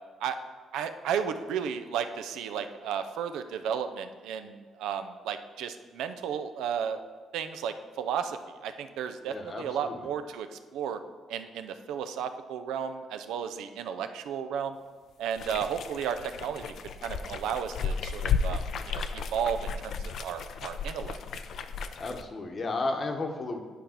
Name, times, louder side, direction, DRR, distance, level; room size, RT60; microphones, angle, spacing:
voice 1, 0.7-7.0 7.3-11.0 11.3-14.8 15.2-16.7 17.0-21.2, right 8 dB, 90° right, 9 dB, 0.5 m, -33 dB
voice 2, 9.3-10.0 22.0-23.6, left 2 dB, 40° left, 4 dB, 0.9 m, -33 dB
sound 1, 15.3-22.2, left 5 dB, 65° left, 0.4 m, -34 dB
9.2 x 3.4 x 5.8 m, 1.5 s
cardioid pair, 90°, 0 cm